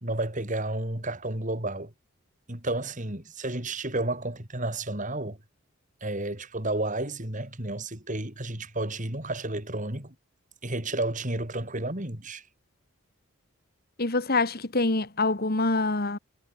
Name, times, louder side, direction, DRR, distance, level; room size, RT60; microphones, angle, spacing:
voice 1, 0.0-1.9 2.5-5.4 6.0-10.1 10.6-12.5, right 2 dB, 35° right, 4.2 m, -31 dB
voice 2, 14.0-16.2, left 3 dB, 45° left, 1.7 m, -25 dB
head